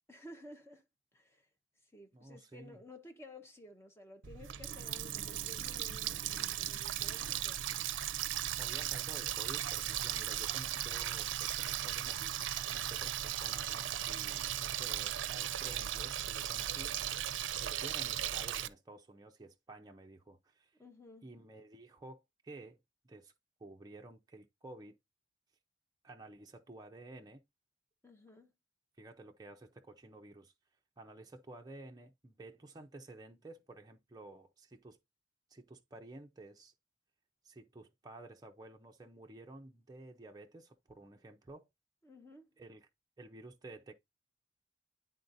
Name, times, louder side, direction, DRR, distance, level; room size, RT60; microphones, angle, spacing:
voice 1, 0.1-0.8 1.1-1.5 1.9-7.6 20.8-21.3 28.0-28.5 42.0-42.5, left 1 dB, 15° left, 1.1 m, -54 dB
voice 2, 2.1-2.8 7.0-7.3 8.5-16.9 17.3-20.7 21.2-22.8 23.0-23.3 23.6-25.0 26.0-27.4 29.0-30.5 31.0-35.0 35.5-36.7 37.4-41.7 42.6-42.9 43.2-43.9, right 2 dB, 20° right, 0.6 m, -52 dB
Water tap faucet, 4.2-18.7, right 11 dB, 75° right, 0.5 m, -37 dB
10.5 x 3.9 x 2.6 m
head